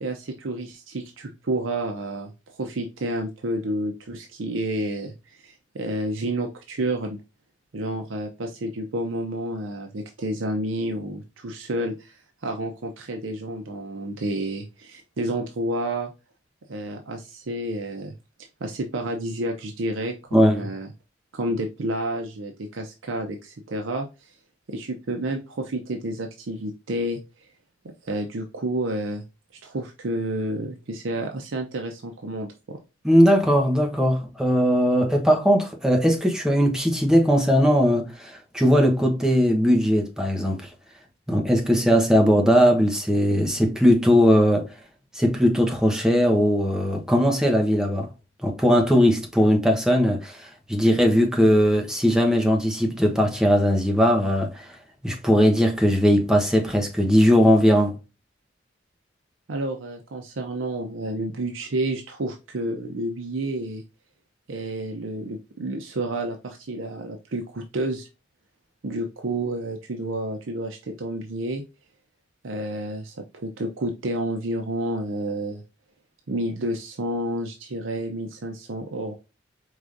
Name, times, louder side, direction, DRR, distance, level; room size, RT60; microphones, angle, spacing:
voice 1, 0.0-2.3 2.6-7.2 7.7-16.1 16.7-18.1 18.6-20.9 21.3-24.4 24.7-27.5 28.0-29.2 29.5-32.8 59.5-63.8 64.5-68.1 68.8-71.6 72.4-75.6 76.3-79.1, right 1 dB, 85° right, 0.6 m, -30 dB
voice 2, 33.0-40.6 41.3-44.7 45.1-48.1 48.4-54.7 55.0-58.0, equal, 5° right, 0.9 m, -19 dB
4.8 x 3.6 x 2.5 m
head